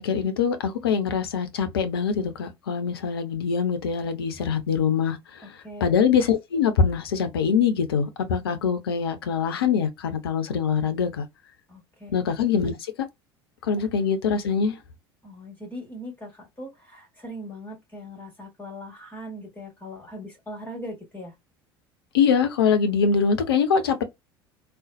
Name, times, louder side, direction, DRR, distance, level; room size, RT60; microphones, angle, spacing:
voice 1, 0.0-11.3 12.1-12.7 13.6-14.7 22.1-24.0, left 6 dB, 70° left, 0.8 m, -23 dB
voice 2, 5.6-5.9 11.7-12.1 15.2-21.3, equal, 15° left, 2.2 m, -40 dB
3.9 x 2.4 x 2.5 m
figure-of-eight pair, 70°, 13 cm